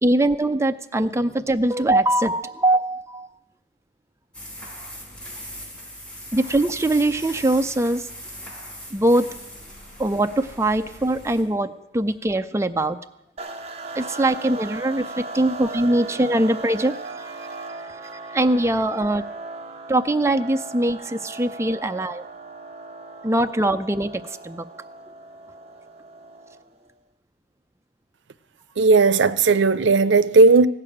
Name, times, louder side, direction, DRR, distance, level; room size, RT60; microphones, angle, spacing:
voice 1, 0.0-3.3 6.3-8.0 8.9-9.3 10.0-13.0 14.0-17.3 18.3-19.2 19.9-22.2 23.2-24.7, right 1 dB, 15° right, 0.5 m, -22 dB
sound 1, 4.3-11.4, equal, 5° left, 4.2 m, -39 dB
sound 2, 13.4-26.8, right 3 dB, 35° right, 1.1 m, -37 dB
voice 2, 28.8-30.7, right 3 dB, 90° right, 0.6 m, -15 dB
16.0 x 6.8 x 9.8 m
head